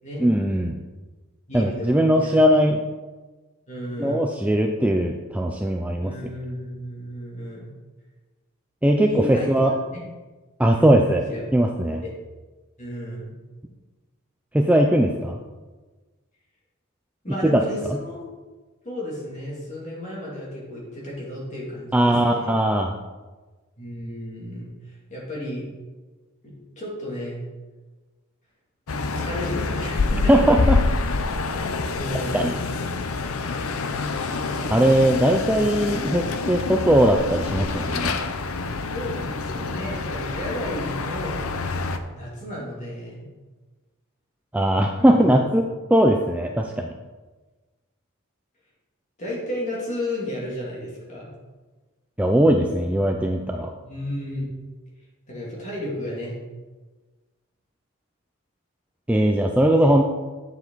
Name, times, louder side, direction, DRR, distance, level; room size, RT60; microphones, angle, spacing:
voice 1, 0.2-0.8 1.5-2.8 4.0-6.1 8.8-9.7 10.6-11.2 11.5-12.0 14.5-15.4 17.4-17.6 21.9-22.9 30.3-30.8 32.3-32.5 34.7-38.1 44.5-46.9 52.2-53.7 59.1-60.1, right 1 dB, 5° right, 2 dB, 0.4 m, -19 dB
voice 2, 1.5-2.4 3.7-4.3 6.0-7.7 9.0-10.0 10.7-11.5 12.0-12.1 12.8-13.3 17.2-18.2 18.8-22.6 23.8-25.6 26.4-27.4 29.1-30.5 31.9-32.6 38.9-41.4 42.1-43.2 45.0-45.3 49.2-51.3 53.8-54.4 55.3-56.3, left 1 dB, 35° left, -4 dB, 2.6 m, -33 dB
sound 1, 28.9-42.0, left 3 dB, 75° left, 0.6 m, -27 dB
8.7 x 7.3 x 4.0 m, 1.3 s
head